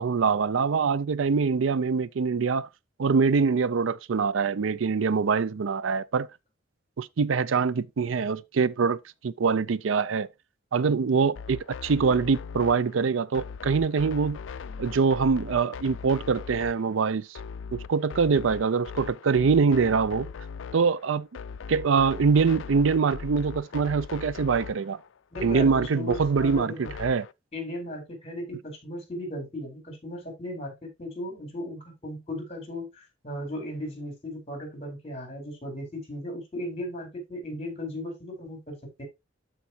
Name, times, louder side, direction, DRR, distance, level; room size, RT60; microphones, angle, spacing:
voice 1, 0.0-2.7 3.0-6.3 7.0-10.3 10.7-14.4 14.8-17.3 17.7-20.3 20.7-21.3 21.7-25.0 25.4-27.2, right 5 dB, 75° right, 0.5 m, -24 dB
sound 1, 11.3-27.3, left 5 dB, 70° left, 0.4 m, -40 dB
voice 2, 25.3-26.9 27.5-39.0, left 1 dB, 35° left, 4.2 m, -36 dB
13.0 x 4.7 x 2.9 m
head